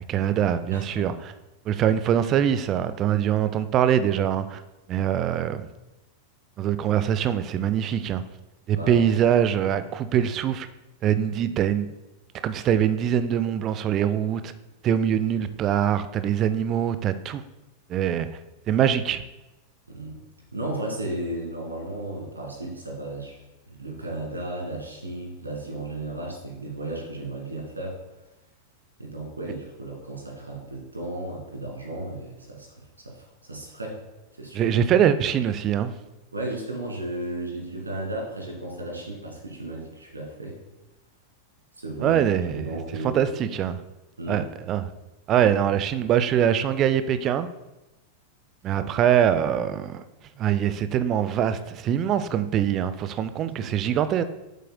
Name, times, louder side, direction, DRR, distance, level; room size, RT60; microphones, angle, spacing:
voice 1, 0.0-1.3 1.7-4.6 4.9-5.6 6.6-8.2 8.7-10.7 11.0-11.9 12.4-14.5 14.8-17.4 17.9-18.3 18.7-19.2 34.5-35.9 42.0-42.7 43.0-43.8 44.3-44.9 45.3-47.5 48.6-50.0 50.4-54.2, right 9 dB, 35° right, 12 dB, 0.5 m, -23 dB
voice 2, 0.7-1.1 8.7-9.1 19.9-20.2 20.5-28.0 29.0-34.0 34.4-34.7 36.3-40.6 41.8-42.2 42.5-43.2 44.2-44.5 48.7-48.8 53.6-53.7, right 1 dB, 80° right, -1 dB, 2.1 m, -34 dB
8.2 x 7.5 x 2.2 m, 1.0 s
figure-of-eight pair, 90°, 0 cm